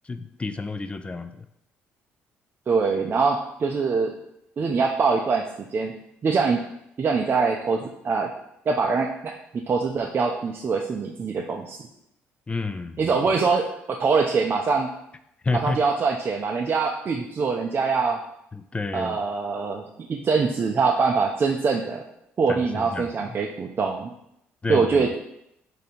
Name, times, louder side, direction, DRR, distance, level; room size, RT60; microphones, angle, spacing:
voice 1, 0.0-1.4 12.5-13.1 15.4-15.8 18.5-19.2 22.5-23.4 24.6-25.1, left 3 dB, 20° left, 10 dB, 0.4 m, -30 dB
voice 2, 2.7-4.2 4.6-5.4 5.7-5.9 6.2-6.6 7.0-8.3 8.7-9.3 9.7-11.8 13.0-14.9 15.6-18.2 18.9-19.8 20.1-22.0 22.4-24.1 24.7-25.1, right 4 dB, 40° right, 1 dB, 0.4 m, -23 dB
3.6 x 2.7 x 4.2 m, 0.79 s
supercardioid pair, 65°, 5 cm